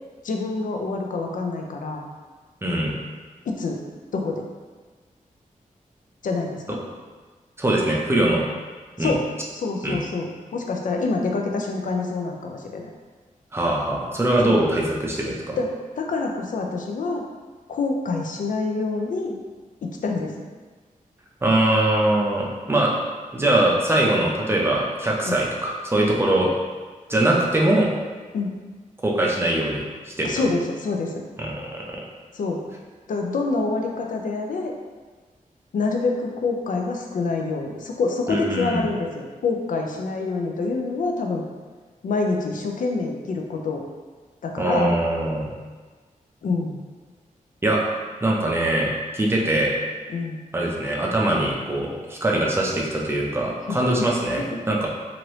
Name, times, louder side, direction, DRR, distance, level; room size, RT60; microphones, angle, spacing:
voice 1, 0.2-2.0 3.5-3.8 4.1-4.5 6.2-6.8 9.0-9.2 9.5-12.9 14.4-14.5 15.6-15.7 16.0-17.2 17.7-19.4 19.8-20.3 25.3-25.4 28.3-28.5 30.2-31.2 32.3-32.6 33.1-34.7 35.7-41.4 42.0-43.8 44.4-44.9 46.4-46.8 50.1-50.4 53.7-54.1 54.4-54.6, left 3 dB, 70° left, 2 dB, 0.4 m, -26 dB
voice 2, 2.6-2.9 7.6-8.5 9.0-9.1 9.8-10.0 13.5-15.6 21.4-22.9 23.3-26.5 27.1-27.9 29.0-30.3 31.4-31.8 38.3-38.9 44.6-45.5 47.6-47.8 48.2-49.7 50.5-54.9, right 1 dB, 15° right, -3 dB, 0.5 m, -22 dB
2.9 x 2.5 x 3.1 m, 1.4 s
wide cardioid pair, 145°, 14 cm